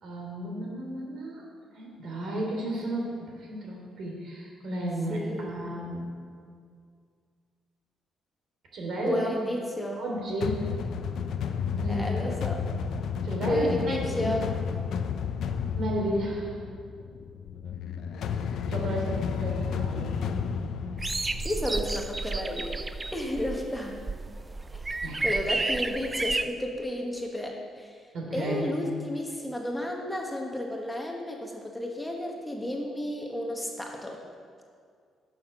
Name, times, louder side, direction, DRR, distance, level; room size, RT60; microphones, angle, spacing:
voice 1, 0.0-1.4 1.7-6.0 8.7-9.3 10.0-10.6 11.7-12.1 13.2-14.3 15.8-16.6 18.7-20.1 25.0-25.2 28.1-28.7, right 1 dB, 65° right, -1 dB, 3.0 m, -33 dB
voice 2, 5.1-5.6 9.0-10.0 11.9-12.6 13.5-14.4 21.4-22.8 23.1-24.0 24.7-24.8 25.2-28.0 28.3-34.2, left 1 dB, 10° left, 1 dB, 1.3 m, -32 dB
sound 1, 10.4-22.3, left 6 dB, 70° left, 0.6 m, -32 dB
sound 2, 21.0-26.4, right 3 dB, 20° right, 0.4 m, -31 dB
11.0 x 6.5 x 5.9 m, 2.1 s
cardioid pair, 95°, 0 cm